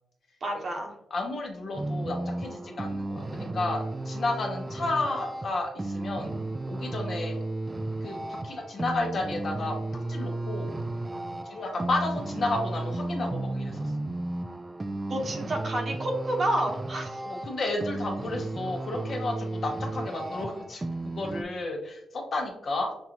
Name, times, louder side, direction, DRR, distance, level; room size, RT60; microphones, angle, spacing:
voice 1, 0.4-0.9 15.1-17.2, right 1 dB, 50° right, 2 dB, 1.0 m, -29 dB
voice 2, 1.1-6.3 6.7-7.4 8.0-10.7 11.4-13.9 17.2-22.9, left 2 dB, 55° left, 2 dB, 1.0 m, -32 dB
sound 1, 1.7-21.4, right 2 dB, 25° right, 0.3 m, -34 dB
5.7 x 2.6 x 2.9 m, 0.79 s
cardioid pair, 75°, 0 cm